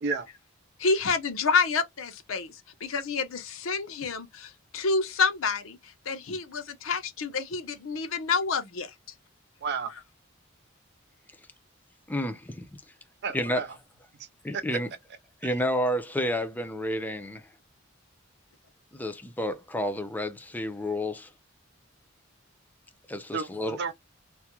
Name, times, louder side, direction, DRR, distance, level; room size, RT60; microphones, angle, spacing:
voice 1, 0.8-2.5 2.8-8.9, left 4 dB, 75° left, 0.7 m, -28 dB
voice 2, 9.6-9.9 13.2-13.7 14.5-14.8 23.3-23.9, right 5 dB, 55° right, 0.5 m, -31 dB
voice 3, 12.1-12.7 13.3-13.7 14.4-14.9 15.4-17.4 18.9-21.3 23.1-23.8, left 1 dB, 10° left, 0.4 m, -30 dB
2.4 x 2.1 x 2.8 m
head